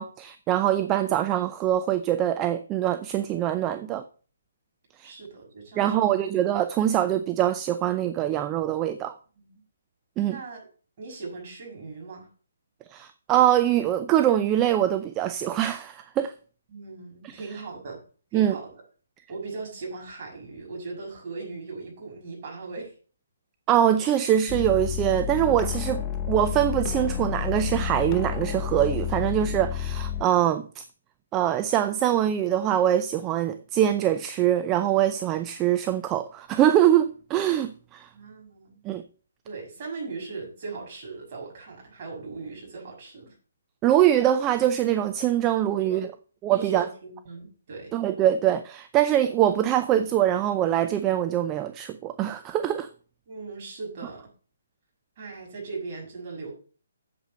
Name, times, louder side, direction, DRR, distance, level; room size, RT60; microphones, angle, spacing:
voice 1, 0.0-4.0 5.0-5.1 5.8-9.1 10.2-10.4 12.9-16.3 17.2-17.4 18.3-18.6 23.7-30.8 31.3-38.1 38.8-39.0 43.8-46.1 46.4-46.9 47.9-52.9, right 11 dB, 20° right, 0.5 m, -23 dB
voice 2, 5.0-6.1 9.3-9.5 10.2-10.7 11.0-12.3 16.7-18.0 18.3-18.7 19.3-22.9 38.1-38.8 39.4-43.3 45.7-46.1 46.5-47.9 53.3-54.2 55.2-56.5, right 4 dB, 40° right, 6.2 m, -38 dB
sound 1, 24.5-30.2, left 9 dB, 20° left, 0.9 m, -30 dB
8.1 x 7.9 x 5.6 m
figure-of-eight pair, 145°, 0 cm